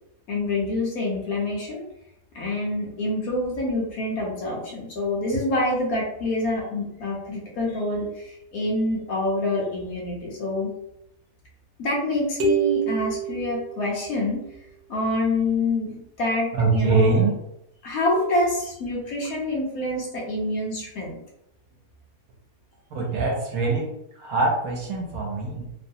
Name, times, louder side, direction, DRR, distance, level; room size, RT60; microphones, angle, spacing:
voice 1, 0.3-1.8 2.3-8.1 8.5-10.7 11.8-14.4 14.9-17.3 17.8-21.2, left 2 dB, 65° left, -3 dB, 1.2 m, -26 dB
sound 1, 12.4-14.3, right 5 dB, 85° right, 0.5 m, -27 dB
voice 2, 16.5-17.3 22.9-23.9 24.2-25.7, right 3 dB, 65° right, -2 dB, 1.1 m, -23 dB
3.1 x 2.1 x 2.7 m, 0.81 s
omnidirectional pair, 1.7 m